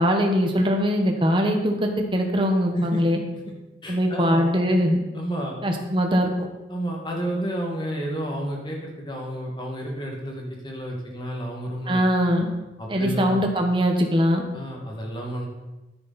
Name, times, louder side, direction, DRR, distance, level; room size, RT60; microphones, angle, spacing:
voice 1, 0.0-3.2 3.9-5.0 5.6-6.3 11.9-12.5 12.9-14.4, equal, 30° right, 3 dB, 1.2 m, -21 dB
voice 2, 3.8-4.5 5.1-5.6 6.7-12.3 12.8-13.4 14.5-15.5, right 1 dB, 25° left, -1 dB, 2.1 m, -31 dB
10.0 x 9.7 x 4.3 m, 1.1 s
head